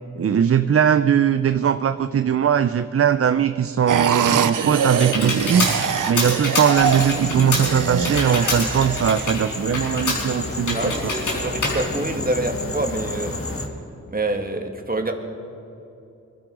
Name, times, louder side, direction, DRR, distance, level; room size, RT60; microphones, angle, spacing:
voice 1, 0.2-5.7 6.1-11.1, right 8 dB, 50° right, 11 dB, 0.5 m, -20 dB
sound 1, 3.9-9.3, right 7 dB, 90° right, 0.8 m, -24 dB
Computer keyboard, 4.2-12.8, left 2 dB, 80° left, 4.9 m, -28 dB
sound 2, 6.7-13.7, left 2 dB, 45° left, 2.0 m, -31 dB
voice 2, 10.7-13.4 14.1-15.1, right 2 dB, 30° right, 4 dB, 2.1 m, -26 dB
22.5 x 12.5 x 5.0 m, 2.8 s
cardioid pair, 65°, 31 cm